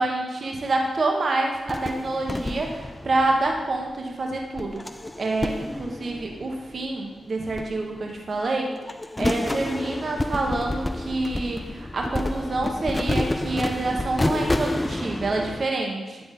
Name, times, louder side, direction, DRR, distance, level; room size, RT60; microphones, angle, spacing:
voice 1, 0.0-4.8 5.2-8.7 9.2-16.2, right 2 dB, 55° right, 1 dB, 1.4 m, -27 dB
sound 1, 1.7-4.0 4.6-7.1 7.5-8.4 8.7-15.7, left 1 dB, 20° left, 0.3 m, -29 dB
11.5 x 3.8 x 3.8 m, 1.2 s
supercardioid pair, 40°, 0 cm